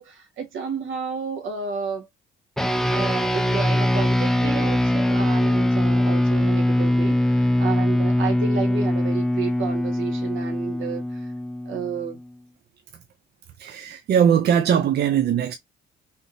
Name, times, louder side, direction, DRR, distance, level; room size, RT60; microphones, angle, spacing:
voice 1, 0.0-2.1 2.9-11.3 11.6-12.2, right 6 dB, 80° right, 1.3 m, -31 dB
sound 1, 2.6-12.2, left 1 dB, ahead, 0.4 m, -22 dB
voice 2, 13.6-15.5, right 8 dB, 55° right, 0.5 m, -20 dB
3.5 x 2.7 x 2.5 m
cardioid pair, 90°, 20 cm